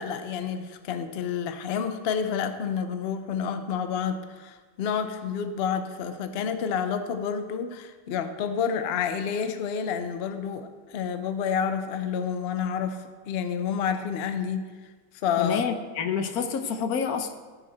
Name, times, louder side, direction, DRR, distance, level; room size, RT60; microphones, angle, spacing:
voice 1, 0.0-14.7 15.2-15.6, left 7 dB, 80° left, 8 dB, 0.5 m, -29 dB
voice 2, 15.4-17.3, left 6 dB, 65° left, 7 dB, 1.1 m, -28 dB
15.5 x 5.7 x 4.2 m, 1.4 s
omnidirectional pair, 1.9 m